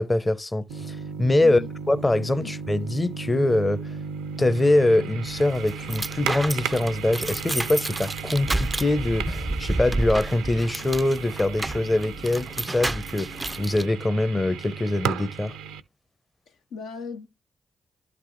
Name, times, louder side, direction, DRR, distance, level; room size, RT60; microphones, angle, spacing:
voice 1, 0.0-1.6 1.9-3.8 4.4-15.5, left 2 dB, 25° left, 0.7 m, -23 dB
sound 1, 0.7-15.8, right 6 dB, 85° right, 0.5 m, -35 dB
voice 2, 1.4-1.7 2.4-2.5 16.5-17.3, left 5 dB, 80° left, 0.5 m, -37 dB
sound 2, 5.3-13.9, right 2 dB, 25° right, 0.3 m, -31 dB
11.5 x 4.0 x 3.1 m
hypercardioid pair, 40°, 0 cm